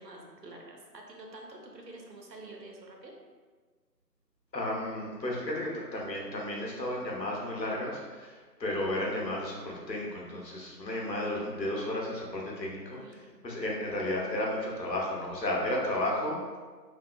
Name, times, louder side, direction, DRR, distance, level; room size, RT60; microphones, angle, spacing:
voice 1, 0.0-3.2 12.9-13.4, right 2 dB, 80° right, 0 dB, 0.8 m, -48 dB
voice 2, 4.5-13.0 13.4-16.4, left 1 dB, 85° left, -3 dB, 0.9 m, -33 dB
3.4 x 2.1 x 2.4 m, 1.5 s
figure-of-eight pair, 165°, 50 cm